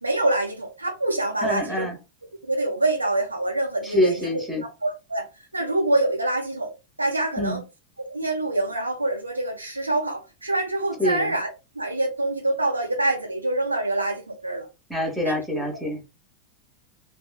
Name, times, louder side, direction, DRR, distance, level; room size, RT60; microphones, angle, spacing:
voice 1, 0.0-1.9 2.4-4.3 4.6-5.3 5.5-6.7 7.0-7.6 8.0-14.7 15.2-15.6, right 2 dB, 80° right, 0.8 m, -25 dB
voice 2, 1.4-2.0 3.8-4.6 7.3-7.6 11.0-11.3 14.9-16.0, left 1 dB, ahead, 0.9 m, -25 dB
2.9 x 2.1 x 2.2 m
figure-of-eight pair, 90°, 0 cm